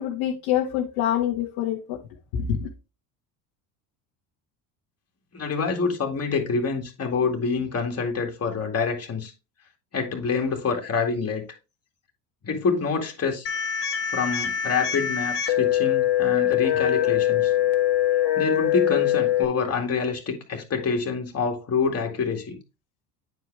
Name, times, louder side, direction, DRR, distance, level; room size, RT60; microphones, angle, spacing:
voice 1, 0.0-2.0 2.3-2.7, left 10 dB, 70° left, 1.4 m, -26 dB
voice 2, 5.3-9.3 9.9-11.4 12.4-13.5 14.1-17.5 18.4-22.6, left 5 dB, 30° left, 2.2 m, -26 dB
sound 1, 13.5-19.5, left 11 dB, 55° left, 1.7 m, -23 dB
9.2 x 4.7 x 3.4 m
hypercardioid pair, 80°, 49 cm